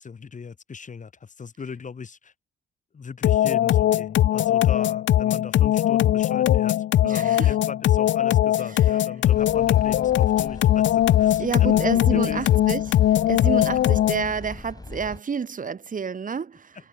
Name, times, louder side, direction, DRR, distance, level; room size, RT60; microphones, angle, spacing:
voice 1, 0.0-2.3 2.9-12.6 13.7-13.8 16.7-16.9, left 5 dB, 40° left, 5.8 m, -38 dB
sound 1, 3.2-14.3, left 12 dB, 70° left, 1.0 m, -20 dB
voice 2, 7.0-7.5 11.4-12.8 13.3-16.8, right 6 dB, 40° right, 5.7 m, -29 dB
sound 2, 9.2-15.2, left 2 dB, 20° left, 6.6 m, -40 dB
cardioid pair, 90°, 20 cm